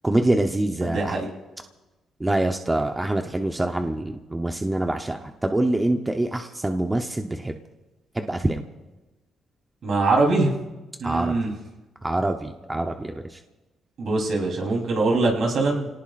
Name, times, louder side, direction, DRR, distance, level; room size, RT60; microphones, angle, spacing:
voice 1, 0.0-1.1 2.2-7.6 8.2-8.6 11.0-11.3 12.0-13.2, right 1 dB, 15° right, 4 dB, 0.9 m, -25 dB
voice 2, 0.8-1.3 9.8-10.5 11.0-11.5 14.0-15.9, right 3 dB, 60° right, 0 dB, 3.7 m, -22 dB
29.5 x 18.5 x 2.6 m, 1.1 s
cardioid pair, 90°, 0 cm